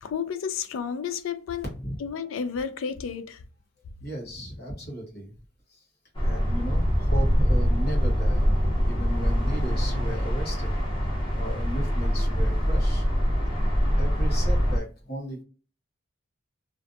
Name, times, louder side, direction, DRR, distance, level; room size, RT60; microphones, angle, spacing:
voice 1, 0.0-1.7 2.0-3.4, left 7 dB, 80° left, 0.4 m, -31 dB
voice 2, 4.0-5.3 6.2-8.4 8.8-10.7 11.3-13.1 13.9-15.4, equal, 50° left, 1.2 m, -35 dB
sound 1, 6.1-14.8, equal, 25° left, 0.8 m, -24 dB
2.5 x 2.2 x 2.5 m
head